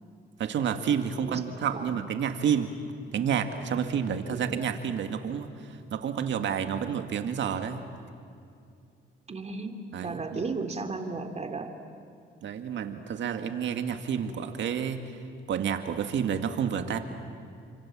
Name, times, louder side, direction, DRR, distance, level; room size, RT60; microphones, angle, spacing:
voice 1, 0.4-2.7 3.1-7.8 9.9-10.4 12.4-15.0 15.5-17.0, right 8 dB, 70° right, 7 dB, 2.0 m, -29 dB
voice 2, 1.2-1.9 4.3-4.6 9.3-11.7, right 3 dB, 35° right, 6 dB, 2.6 m, -35 dB
29.0 x 25.5 x 7.6 m, 2.5 s
cardioid pair, 90°, 20 cm